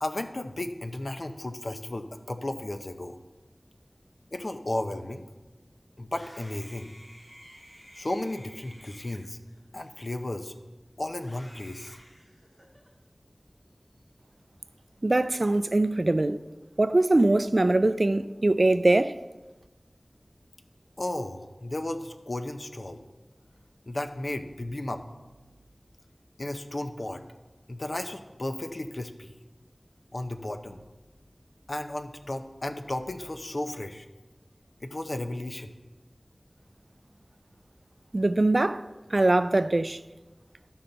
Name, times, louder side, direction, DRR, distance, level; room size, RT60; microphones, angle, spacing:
voice 1, 0.0-3.2 4.3-5.2 6.0-6.9 7.9-9.4 9.7-10.5 11.0-12.0 21.0-23.1 23.9-25.0 26.4-27.2 27.7-29.3 30.1-30.8 31.7-34.1 34.8-35.8, left 1 dB, 60° left, 0.7 m, -34 dB
Screaming, 6.0-10.5 11.2-12.9, equal, 10° left, 2.0 m, -53 dB
voice 2, 15.0-16.4 16.8-19.2 38.1-38.8 39.1-40.0, right 2 dB, 55° right, 0.3 m, -22 dB
13.0 x 5.6 x 3.9 m
wide cardioid pair, 55°, 0 cm